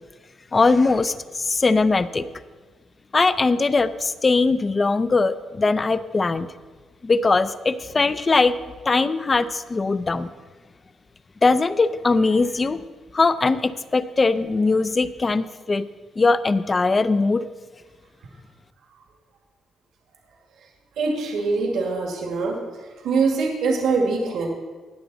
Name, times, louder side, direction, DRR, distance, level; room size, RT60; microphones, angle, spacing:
voice 1, 0.5-2.3 3.1-6.5 7.0-8.5 8.9-10.3 11.4-12.8 13.1-15.8 16.2-17.4, left 3 dB, 30° left, 14 dB, 0.6 m, -20 dB
voice 2, 21.0-22.6 23.0-24.5, right 4 dB, 75° right, 1 dB, 2.0 m, -23 dB
18.5 x 6.9 x 4.1 m, 1.4 s
cardioid pair, 90°, 0 cm